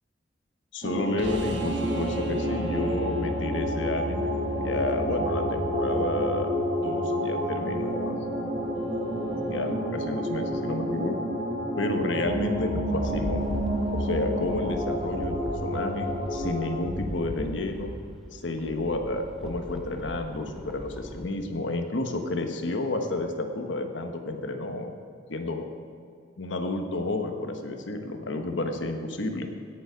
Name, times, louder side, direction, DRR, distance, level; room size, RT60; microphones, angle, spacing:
voice 1, 0.7-8.2 9.5-11.2 11.8-13.4 13.9-17.9 18.3-24.9 25.3-25.6 26.4-29.5, left 2 dB, 80° left, 5 dB, 1.2 m, -31 dB
sound 1, 0.8-16.8, equal, 45° right, 1.8 m, -29 dB
sound 2, 1.2-7.1 9.6-9.7, right 1 dB, 70° right, 1.2 m, -36 dB
Rattle, 12.9-21.3, equal, ahead, 0.9 m, -39 dB
16.5 x 6.9 x 5.1 m, 2.4 s
head